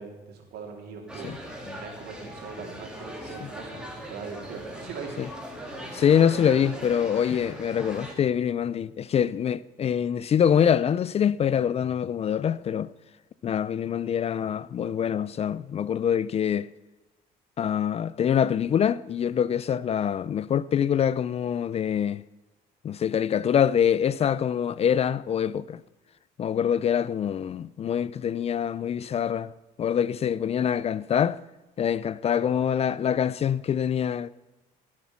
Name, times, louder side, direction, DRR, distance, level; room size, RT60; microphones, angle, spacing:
voice 1, 0.0-5.3 5.5-5.6 32.3-32.5, right 5 dB, 75° right, 3.3 m, -41 dB
sound 1, 1.1-8.1, right 1 dB, 5° right, 3.1 m, -40 dB
voice 2, 5.9-12.9 13.4-16.7 17.6-22.2 22.8-25.8 26.4-29.5 29.8-31.4 31.8-34.3, left 8 dB, 40° left, 0.4 m, -25 dB
18.0 x 7.6 x 5.9 m
cardioid pair, 110°, 17 cm